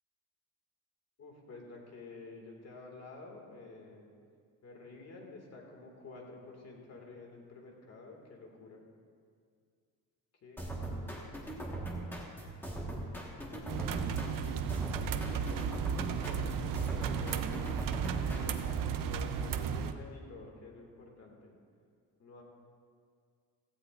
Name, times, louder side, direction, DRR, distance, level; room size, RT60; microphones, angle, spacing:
voice 1, 1.2-4.0 4.6-8.8 10.4-11.4 13.3-14.1 15.2-21.5 22.2-22.4, left 3 dB, 45° left, 0 dB, 2.1 m, -50 dB
sound 1, 10.6-18.8, right 1 dB, 5° left, 1.5 m, -40 dB
sound 2, 13.7-19.9, right 7 dB, 65° right, 0.7 m, -34 dB
16.5 x 15.0 x 2.5 m, 2.2 s
cardioid pair, 165°, 35 cm